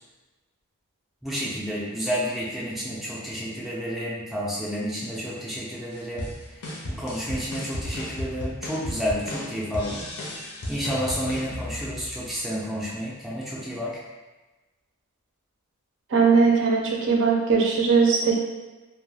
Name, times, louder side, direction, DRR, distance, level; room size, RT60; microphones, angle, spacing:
voice 1, 1.2-10.1 10.3-14.0, equal, ahead, -7 dB, 0.4 m, -31 dB
sound 1, 5.9-12.4, left 1 dB, 80° left, 0.6 m, -35 dB
voice 2, 16.1-18.3, right 5 dB, 55° right, -1 dB, 0.5 m, -20 dB
2.2 x 2.2 x 3.1 m, 1.2 s
head